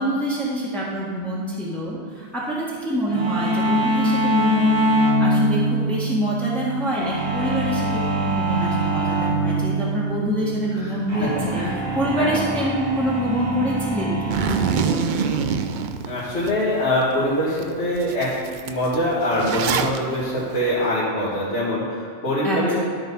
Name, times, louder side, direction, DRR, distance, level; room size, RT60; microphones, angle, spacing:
voice 1, 0.0-4.9 5.2-11.6 11.9-15.7 22.4-22.8, equal, ahead, -7 dB, 1.6 m, -26 dB
sound 1, 3.1-17.6, right 1 dB, 20° right, 1.8 m, -24 dB
voice 2, 10.8-11.8 12.1-12.4 16.1-18.3 18.6-22.8, left 1 dB, 70° left, -11 dB, 2.3 m, -24 dB
Zipper (clothing), 14.3-16.5 17.0-17.1 17.6-17.7 17.9-20.0, right 7 dB, 55° right, 0.5 m, -25 dB
12.5 x 4.4 x 5.5 m, 2.2 s
omnidirectional pair, 1.2 m